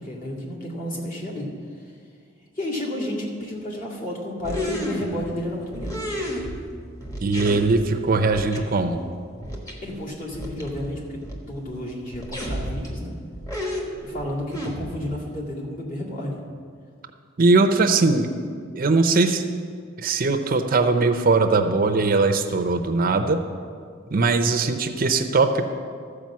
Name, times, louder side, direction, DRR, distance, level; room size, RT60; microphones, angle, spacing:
voice 1, 0.0-1.5 2.6-5.9 9.8-11.2 11.5-13.1 14.0-16.4, left 1 dB, 45° left, -4 dB, 2.2 m, -31 dB
sound 1, 4.4-5.4 5.7-6.7 7.0-7.8 8.3-8.6 8.9-9.0 9.4-9.7 10.0-10.1 10.3-11.4 11.8-11.9 12.1-13.0 13.3-15.1, equal, 15° left, 1.4 m, -32 dB
voice 2, 7.2-9.0 17.4-18.3 18.7-19.4 20.0-23.4 24.1-25.7, right 3 dB, 45° right, 7 dB, 0.6 m, -20 dB
13.5 x 4.9 x 7.3 m, 2.1 s
head